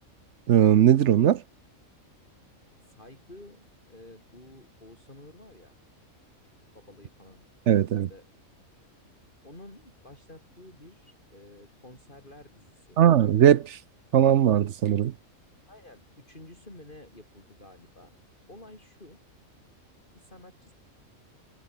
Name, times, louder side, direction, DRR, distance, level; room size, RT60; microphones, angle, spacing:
voice 1, 0.5-1.4 7.7-8.1 13.0-13.8 14.1-15.1, right 10 dB, 60° right, 0.9 m, -19 dB
voice 2, 2.9-5.7 6.7-7.5 8.0-8.3 9.4-13.0 15.7-18.1 18.5-19.2 20.1-20.7, left 1 dB, 35° left, 5.5 m, -50 dB
omnidirectional pair, 1.4 m